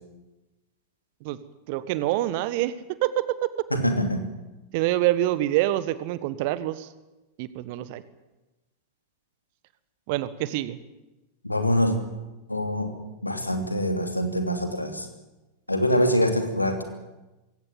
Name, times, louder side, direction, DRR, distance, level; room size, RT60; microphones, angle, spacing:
voice 1, 1.7-2.7 3.0-3.5 4.7-6.9 7.4-8.0 10.1-10.8, right 15 dB, 50° right, 15 dB, 1.3 m, -26 dB
voice 2, 3.7-4.2 11.4-12.0 12.5-15.1 15.7-16.8, equal, 85° left, 6 dB, 2.8 m, -24 dB
22.0 x 17.0 x 8.8 m, 1.1 s
figure-of-eight pair, 90°, 0 cm